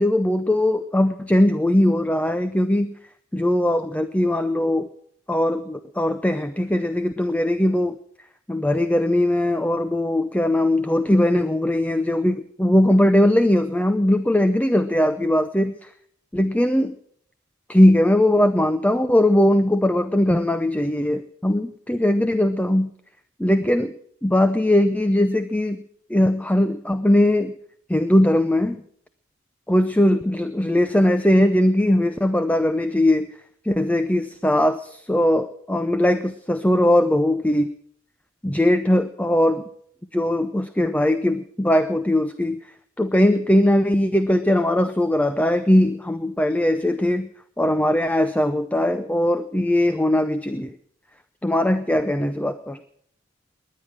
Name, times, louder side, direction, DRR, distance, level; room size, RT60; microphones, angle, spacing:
voice 1, 0.0-2.9 3.3-4.9 5.3-8.0 8.5-15.9 16.3-16.9 17.7-22.9 23.4-23.9 24.2-25.8 26.1-27.5 27.9-28.8 29.7-33.3 33.6-37.7 38.4-39.6 40.1-42.6 43.0-47.3 47.6-50.7 51.4-52.8, left 1 dB, 5° left, 10 dB, 0.6 m, -20 dB
20.5 x 10.5 x 6.3 m, 0.63 s
head